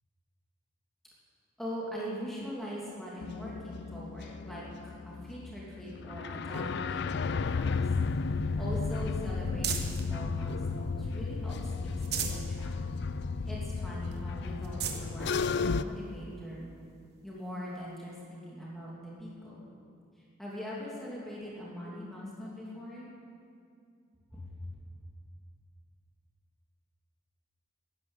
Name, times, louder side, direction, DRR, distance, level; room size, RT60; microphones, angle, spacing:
voice 1, 1.6-7.9 8.5-12.7 13.5-16.7 17.2-19.7 20.2-23.1 24.3-24.5, equal, ahead, -7 dB, 2.9 m, -42 dB
sound 1, 3.2-15.8, left 4 dB, 55° left, 0.4 m, -33 dB
sound 2, 7.4-10.1 10.6-11.4 11.8-12.5 12.9-13.0 13.4-13.5 14.1-14.2 14.6-15.1 15.9-16.0 17.7-17.8, right 8 dB, 50° right, 1.3 m, -39 dB
14.0 x 10.5 x 9.0 m, 2.3 s
head